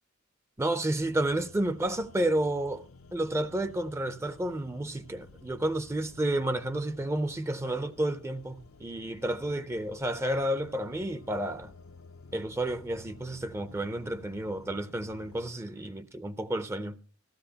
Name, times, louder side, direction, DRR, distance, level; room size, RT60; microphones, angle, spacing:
voice 1, 0.6-2.8 3.1-11.7 12.3-17.0, right 1 dB, 15° right, 0.5 m, -31 dB
sound 1, 1.0-15.5, left 3 dB, 80° left, 0.7 m, -52 dB
15.5 x 13.5 x 2.8 m
head